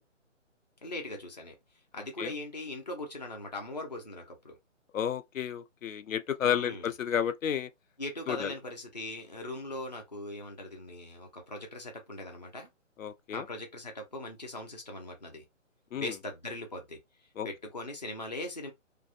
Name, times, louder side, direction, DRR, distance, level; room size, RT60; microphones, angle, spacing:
voice 1, 0.8-1.6 1.9-4.6 6.4-6.9 8.0-12.7 13.3-15.4 15.9-17.0 17.4-18.7, left 1 dB, 35° left, 0.5 m, -40 dB
voice 2, 4.9-7.7 8.3-8.5 13.0-13.4 15.9-16.1 17.4-17.5, left 9 dB, 90° left, 0.6 m, -31 dB
2.5 x 2.0 x 2.4 m
hypercardioid pair, 175°, 38 cm